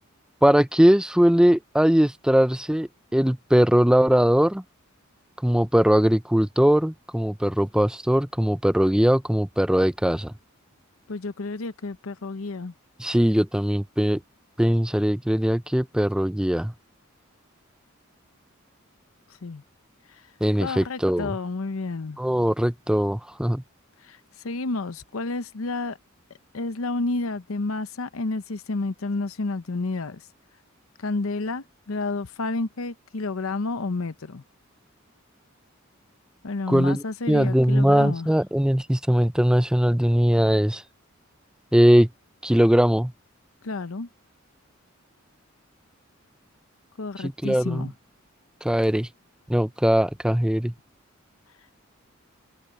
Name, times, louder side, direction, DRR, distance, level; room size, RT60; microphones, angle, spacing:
voice 1, 0.4-4.6 5.4-10.3 13.0-14.2 14.6-16.7 20.4-21.3 22.2-23.6 36.7-40.8 41.7-42.1 42.4-43.1 47.2-47.9 48.6-49.1 49.5-50.7, equal, 5° right, 0.5 m, -20 dB
voice 2, 11.1-12.7 19.4-19.6 20.6-22.2 24.0-24.2 24.4-26.0 26.5-30.2 31.0-34.4 36.4-38.3 43.6-44.1 47.0-47.9, left 3 dB, 80° left, 0.8 m, -30 dB
head